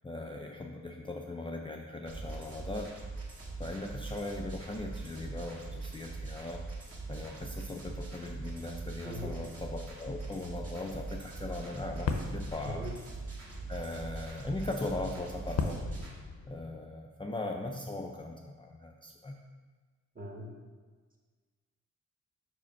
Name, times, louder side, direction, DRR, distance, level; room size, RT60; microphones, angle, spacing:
voice 1, 0.0-2.9 3.6-6.6 7.1-12.9 13.7-15.8 16.5-19.4, left 2 dB, 15° left, 1 dB, 0.4 m, -39 dB
sound 1, 2.1-16.1, right 3 dB, 50° right, 1.6 m, -42 dB
voice 2, 9.0-9.3 12.6-13.0 20.1-20.5, equal, 30° right, 1 dB, 1.1 m, -40 dB
sound 2, 11.7-16.7, left 5 dB, 60° left, 0.6 m, -39 dB
5.0 x 5.0 x 5.4 m, 1.4 s
wide cardioid pair, 140°, 30 cm